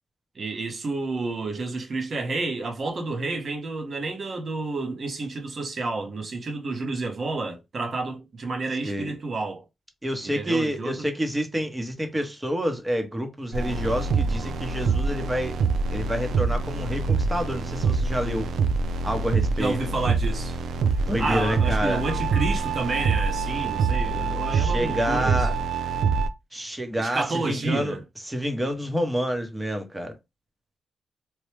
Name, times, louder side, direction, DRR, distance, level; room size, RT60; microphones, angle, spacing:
voice 1, 0.3-9.6 10.3-11.1 19.6-20.6 21.2-25.5 27.0-28.0, right 3 dB, 45° right, 0.8 m, -30 dB
voice 2, 8.8-9.1 10.0-15.5 15.9-18.5 19.0-19.8 21.1-22.0 24.5-25.6 26.5-28.0 28.2-30.2, equal, 15° right, 0.8 m, -28 dB
sound 1, 13.5-26.3, right 4 dB, 80° right, 0.3 m, -25 dB
3.0 x 2.1 x 3.3 m
cardioid pair, 100°, 0 cm